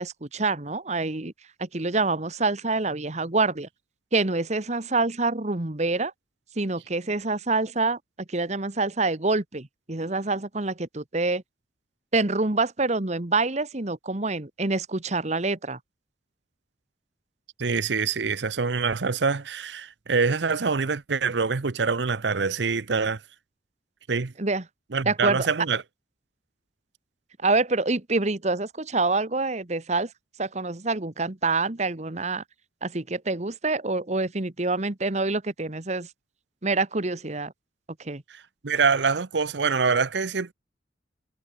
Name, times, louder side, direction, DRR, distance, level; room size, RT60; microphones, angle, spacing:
voice 1, 0.0-1.3 1.6-3.7 4.1-6.1 6.5-8.0 8.3-11.4 12.1-15.8 24.4-24.6 25.0-25.5 27.4-30.1 30.4-32.4 32.8-36.1 36.6-37.5 38.0-38.2, right 3 dB, 40° right, 1.3 m, -26 dB
voice 2, 17.6-23.2 24.1-24.3 24.9-25.8 38.6-40.5, right 5 dB, 70° right, 0.8 m, -25 dB
head